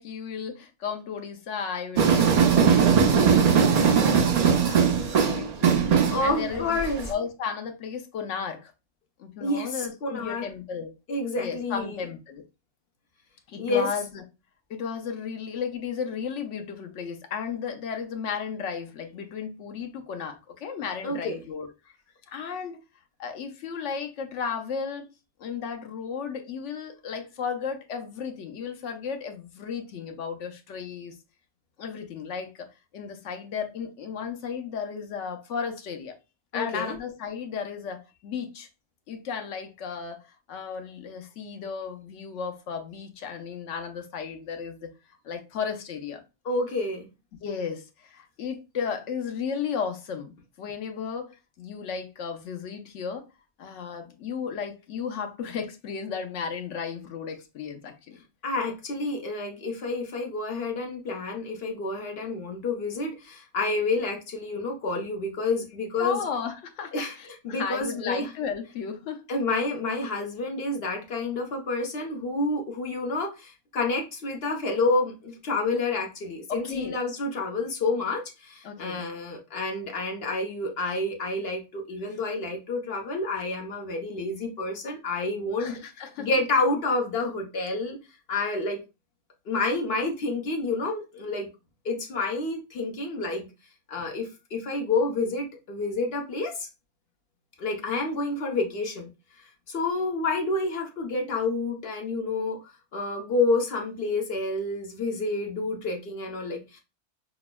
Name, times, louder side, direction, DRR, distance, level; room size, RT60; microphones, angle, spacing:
voice 1, 0.0-4.3 4.7-5.9 6.2-6.8 7.1-8.7 9.2-10.9 11.4-12.4 13.5-14.2 14.7-21.7 22.3-22.8 23.2-25.1 25.4-31.2 31.8-36.2 36.5-38.7 39.1-40.2 40.5-44.9 45.2-46.2 47.4-53.3 53.6-58.2 66.0-69.2 76.5-77.0 78.6-79.1 85.6-86.3, left 6 dB, 85° left, 1.0 m, -34 dB
sound 1, 2.0-7.1, right 6 dB, 75° right, 0.3 m, -20 dB
voice 2, 6.1-7.1 9.4-10.5 11.1-12.1 13.6-14.0 21.0-21.4 36.5-37.0 46.4-47.1 58.4-66.3 66.9-68.3 69.3-85.8 86.2-88.0 88.3-88.8 89.5-91.5 91.8-93.5 93.9-96.7 97.6-99.1 99.7-102.6 102.9-106.8, left 3 dB, 60° left, 1.0 m, -29 dB
5.8 x 2.0 x 2.2 m
omnidirectional pair, 1.2 m